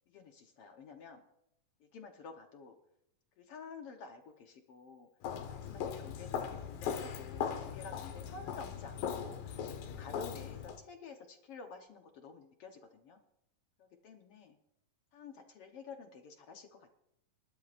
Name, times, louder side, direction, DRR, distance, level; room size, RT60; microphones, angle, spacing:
voice 1, 0.1-1.2 1.8-2.7 3.4-5.1 5.5-13.2 13.8-14.6 15.1-16.9, left 4 dB, 65° left, 4 dB, 1.5 m, -51 dB
Walk footsteps, 5.2-10.8, left 8 dB, 85° left, 2.9 m, -39 dB
29.0 x 12.0 x 2.6 m, 0.80 s
omnidirectional pair, 3.9 m